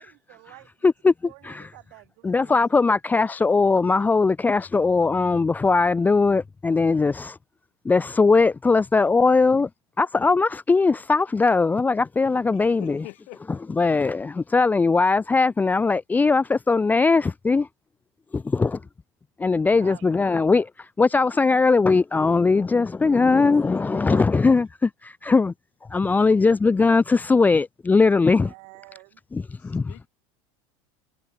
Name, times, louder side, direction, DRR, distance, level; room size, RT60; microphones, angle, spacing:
voice 1, 0.0-2.7 18.6-18.9 19.8-20.1 23.4-23.8 24.1-24.4 26.2-26.7 28.3-29.2, right 40 dB or more, 65° right, 3.7 m, -48 dB
voice 2, 0.8-1.7 2.2-7.4 7.8-9.7 10.0-13.0 13.7-17.7 18.3-18.8 19.4-25.5 25.9-28.5 29.3-29.9, left 4 dB, 10° left, 0.4 m, -20 dB
voice 3, 12.5-13.4 29.6-30.1, left 25 dB, 60° left, 6.2 m, -44 dB
supercardioid pair, 110°, 16 cm